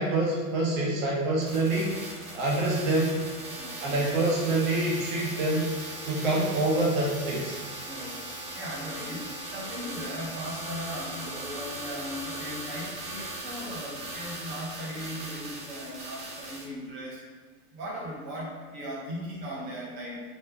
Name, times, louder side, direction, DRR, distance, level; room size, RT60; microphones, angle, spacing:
voice 1, 0.0-1.9 2.3-3.2 3.8-5.7 6.0-7.6, right 2 dB, 60° right, -3 dB, 1.1 m, -26 dB
sound 1, 1.4-16.6, right 2 dB, 85° right, 1.4 m, -39 dB
voice 2, 3.6-4.1 7.8-17.2 17.7-20.2, equal, 25° right, -5 dB, 0.8 m, -38 dB
3.1 x 2.2 x 3.5 m, 1.4 s
supercardioid pair, 150°, 45 cm